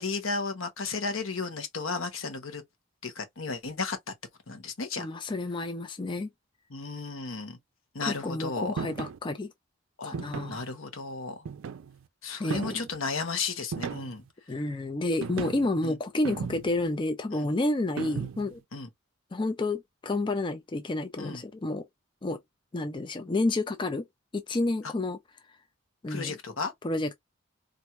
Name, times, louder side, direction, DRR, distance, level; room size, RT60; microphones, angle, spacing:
voice 1, 0.0-2.6 3.0-4.0 4.5-5.1 6.7-7.6 7.9-8.7 10.0-10.1 10.5-11.4 12.2-14.2 15.8-16.0 17.3-17.5 18.7-18.9 21.2-21.4 26.1-26.7, left 4 dB, 85° left, 0.9 m, -34 dB
voice 2, 5.0-6.3 8.0-9.5 10.0-10.6 12.4-12.9 14.5-18.6 19.3-21.8 22.2-22.4 22.7-24.0 24.3-25.2 26.0-26.4 26.8-27.1, left 2 dB, 25° left, 0.4 m, -30 dB
sound 1, 8.8-9.2 10.1-10.6 11.5-12.0 12.5-13.0 13.7-14.3 15.2-15.7 16.2-16.9 18.0-18.6, right 6 dB, 85° right, 0.4 m, -36 dB
4.3 x 2.5 x 2.3 m
head